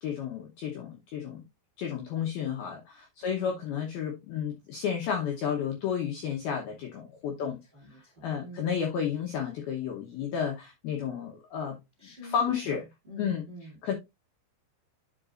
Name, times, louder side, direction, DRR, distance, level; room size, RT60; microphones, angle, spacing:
voice 1, 0.0-1.4 1.8-7.6 8.2-11.8 12.3-12.8 13.2-13.4 13.8-13.9, left 8 dB, 80° left, 2.2 m, -32 dB
voice 2, 3.2-3.6 7.4-8.8 12.0-13.9, equal, 55° right, 0.5 m, -47 dB
10.5 x 4.9 x 2.4 m
omnidirectional pair, 5.8 m